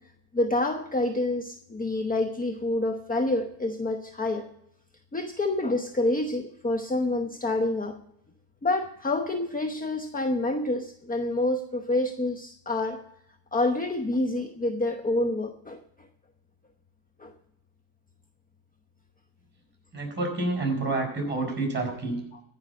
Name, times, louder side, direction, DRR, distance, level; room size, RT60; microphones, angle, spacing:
voice 1, 0.3-4.5 5.1-8.0 8.6-13.0 13.5-15.8 17.2-17.3 22.3-22.4, left 2 dB, 15° left, 7 dB, 0.9 m, -27 dB
voice 2, 19.9-22.2, right 2 dB, 20° right, 2 dB, 6.1 m, -28 dB
14.5 x 5.7 x 8.4 m, 0.77 s
cardioid pair, 90°, 50 cm